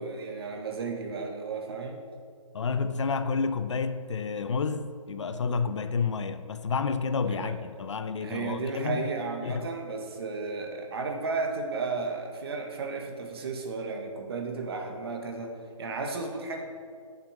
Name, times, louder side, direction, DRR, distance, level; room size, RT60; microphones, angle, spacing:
voice 1, 0.0-2.0 7.3-7.5 8.2-16.6, right 4 dB, 45° right, 1.5 m, -34 dB
voice 2, 2.5-9.1 9.4-9.7, left 5 dB, 60° left, 0.6 m, -30 dB
8.5 x 6.6 x 6.0 m
hypercardioid pair, 165°, 18 cm